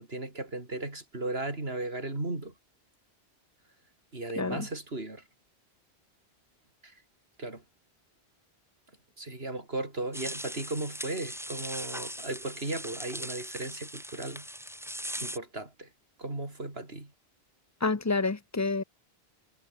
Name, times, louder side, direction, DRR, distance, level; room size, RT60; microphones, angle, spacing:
voice 1, 0.0-2.5 4.1-5.2 6.8-6.9 7.4-7.6 9.2-14.5 15.2-15.9 16.2-17.1, right 2 dB, 70° right, 4.9 m, -36 dB
voice 2, 4.4-4.7 17.8-18.8, left 3 dB, 20° left, 0.6 m, -28 dB
sound 1, 10.1-15.4, equal, ahead, 3.2 m, -40 dB
omnidirectional pair, 1.1 m